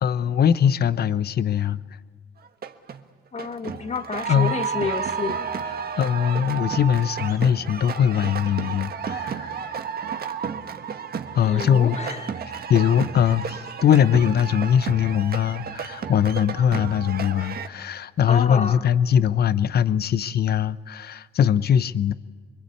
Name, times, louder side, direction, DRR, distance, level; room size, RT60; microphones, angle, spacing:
voice 1, 0.0-1.8 4.3-4.5 6.0-9.5 11.3-12.0 12.7-22.1, left 8 dB, 55° left, 0.8 m, -21 dB
sound 1, 2.5-3.0 3.4-17.7, right 7 dB, 50° right, 1.4 m, -32 dB
voice 2, 3.3-5.5 11.4-12.3 18.2-18.9, left 5 dB, 35° left, 1.3 m, -30 dB
25.5 x 22.0 x 8.4 m
cardioid pair, 90°, 20 cm